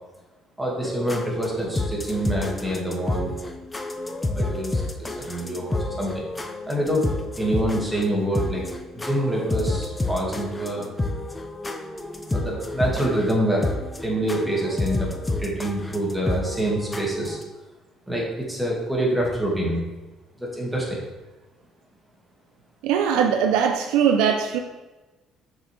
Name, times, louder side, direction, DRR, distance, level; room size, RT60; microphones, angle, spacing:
voice 1, 0.6-3.4 4.3-6.2 6.7-8.6 8.9-10.9 12.3-13.7 14.0-15.1 15.4-17.4 18.1-19.8 20.4-21.1, right 1 dB, 5° right, -4 dB, 1.9 m, -26 dB
sound 1, 0.8-17.4, left 2 dB, 15° left, 0.6 m, -30 dB
voice 2, 22.8-24.6, right 7 dB, 85° right, 5 dB, 0.4 m, -20 dB
6.5 x 4.5 x 3.3 m, 1.1 s
cardioid pair, 90°, 0 cm